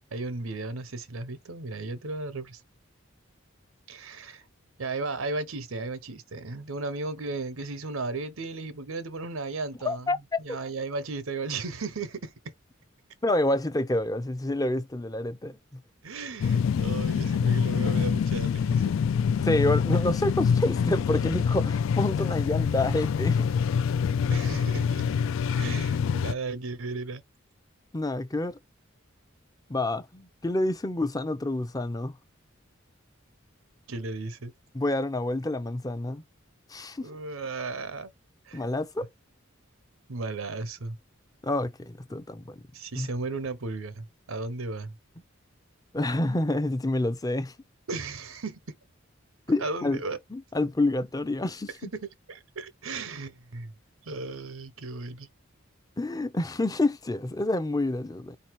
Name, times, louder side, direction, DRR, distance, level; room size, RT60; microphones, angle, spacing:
voice 1, 0.1-2.6 3.9-4.5 4.8-12.5 16.0-19.0 24.3-25.1 25.5-27.2 33.9-34.5 37.0-38.1 38.5-38.6 40.1-41.0 42.7-45.0 47.9-48.8 49.6-50.2 51.9-53.7 54.1-55.3, right 3 dB, 85° right, 0.9 m, -35 dB
voice 2, 9.8-10.6 13.2-15.8 19.4-23.5 27.9-28.6 29.7-32.1 34.7-36.2 36.7-37.1 38.5-39.1 41.4-42.6 43.0-43.1 45.9-47.5 49.5-50.0 50.3-51.7 56.0-58.4, left 1 dB, 20° left, 0.5 m, -28 dB
sound 1, 16.4-26.3, left 6 dB, 70° left, 0.3 m, -25 dB
4.3 x 2.7 x 4.6 m
head